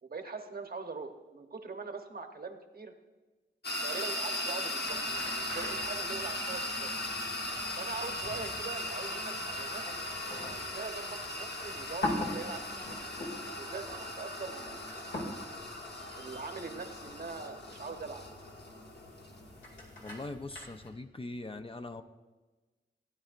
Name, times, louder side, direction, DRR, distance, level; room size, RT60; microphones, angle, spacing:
voice 1, 0.0-2.9 3.8-6.9 7.8-9.8 10.6-13.0 13.6-15.4 16.1-18.3, right 4 dB, 55° right, 5 dB, 1.0 m, -42 dB
sound 1, 3.6-20.3, left 1 dB, 60° left, 1.3 m, -38 dB
sound 2, 4.8-20.9, left 1 dB, 80° left, 2.5 m, -44 dB
voice 2, 20.0-22.0, left 2 dB, 30° left, 7 dB, 0.5 m, -41 dB
15.5 x 9.1 x 2.5 m, 1.2 s
cardioid pair, 60°, 19 cm